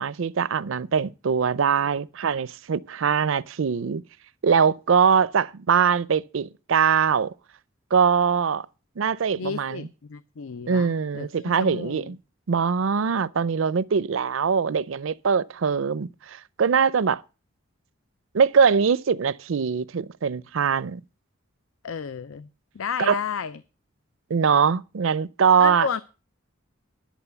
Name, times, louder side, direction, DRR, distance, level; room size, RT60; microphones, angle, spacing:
voice 1, 0.0-4.0 4.4-7.3 7.9-8.7 9.0-9.9 10.7-12.2 12.5-17.2 18.3-21.0 23.0-23.2 24.3-25.9, right 6 dB, 70° right, 0.5 m, -22 dB
voice 2, 9.4-12.1 21.8-22.5 22.7-23.6 25.6-26.0, left 6 dB, 80° left, 0.5 m, -32 dB
11.0 x 7.3 x 6.9 m
head